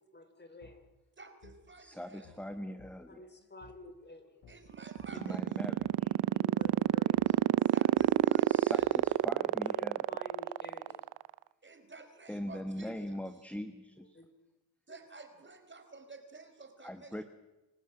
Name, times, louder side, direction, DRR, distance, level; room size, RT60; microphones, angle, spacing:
voice 1, 0.1-0.8 3.1-4.4 6.4-7.4 9.6-11.0 14.0-14.3 14.9-15.0, left 2 dB, 25° left, 9 dB, 3.4 m, -51 dB
sound 1, 0.6-0.7 1.4-1.6 2.2-2.4 2.8-2.9 3.6-3.7 4.4-4.6 5.0-5.1 5.8-5.9 6.6-6.7 7.1-7.3 8.0-8.1 8.8-8.9, left 4 dB, 85° left, 5.9 m, -55 dB
voice 2, 1.2-2.5 4.5-5.4 7.7-9.1 11.6-13.2 14.9-17.2, right 3 dB, 30° right, 6 dB, 4.6 m, -52 dB
voice 3, 1.8-3.2 5.1-6.2 8.5-10.0 12.3-14.2 16.8-17.2, equal, 5° left, 9 dB, 1.4 m, -41 dB
sound 2, 4.7-11.3, right 15 dB, 75° right, 0.7 m, -26 dB
26.5 x 14.5 x 9.0 m, 1.1 s
cardioid pair, 80°, 38 cm